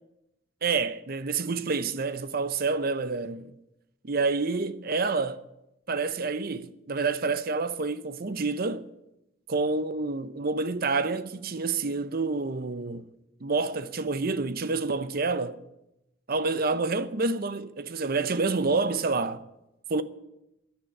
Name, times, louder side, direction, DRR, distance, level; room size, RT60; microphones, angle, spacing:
voice 1, 0.6-3.5 4.0-5.4 5.9-8.9 9.5-13.1 13.4-15.6 16.3-19.4 19.9-20.0, right 3 dB, 50° right, 0.7 m, -28 dB
11.5 x 9.8 x 9.8 m
head